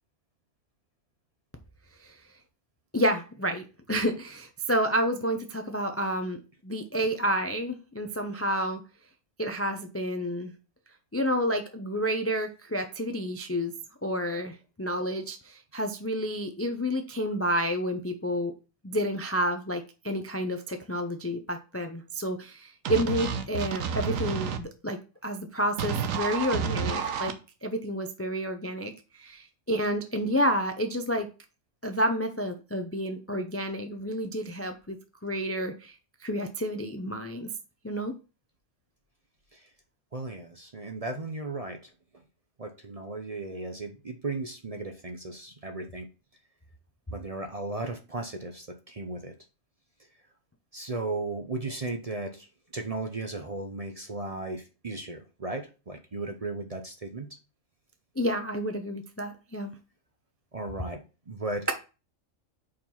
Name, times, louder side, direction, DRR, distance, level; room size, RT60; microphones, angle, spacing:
voice 1, 2.9-8.8 9.4-10.5 11.1-13.7 14.0-18.5 18.8-27.3 27.6-28.9 29.2-31.3 31.8-35.0 35.2-35.9 36.2-37.5 37.8-38.1 58.2-59.7, equal, 15° left, 6 dB, 0.5 m, -30 dB
sound 1, 22.8-24.6 25.8-27.3, right 6 dB, 80° right, 1.2 m, -30 dB
voice 2, 40.1-41.9 42.6-46.1 47.1-49.4 50.7-52.5 52.7-57.3 60.5-61.7, right 2 dB, 35° right, 5 dB, 0.7 m, -36 dB
5.1 x 4.5 x 5.5 m, 0.31 s
omnidirectional pair, 1.4 m